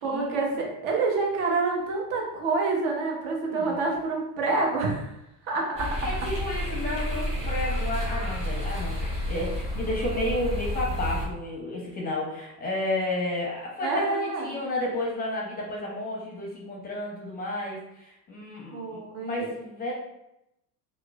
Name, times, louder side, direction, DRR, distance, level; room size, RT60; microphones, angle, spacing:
voice 1, 0.0-5.0 5.5-6.0 13.8-14.5 18.7-19.5, right 3 dB, 60° right, 0 dB, 0.8 m, -27 dB
voice 2, 3.5-3.8 6.0-19.9, left 1 dB, 20° left, -3 dB, 0.5 m, -32 dB
sound 1, 5.8-11.3, left 1 dB, 15° right, 0.9 m, -30 dB
3.0 x 2.0 x 2.2 m, 0.85 s
supercardioid pair, 105°, 47 cm